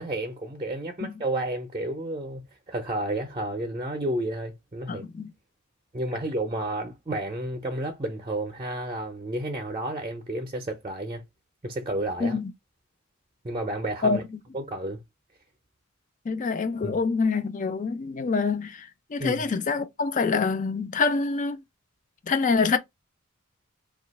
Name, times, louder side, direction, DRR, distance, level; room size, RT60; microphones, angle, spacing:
voice 1, 0.0-5.0 5.9-11.2 11.6-12.4 13.4-14.2 14.5-15.0 16.8-17.0 19.2-19.5, right 1 dB, 25° right, 0.5 m, -31 dB
voice 2, 4.9-5.3 12.2-12.5 14.0-14.2 16.3-18.9 19.1-21.6 22.3-22.8, left 4 dB, 35° left, 0.4 m, -26 dB
2.7 x 2.3 x 4.0 m
head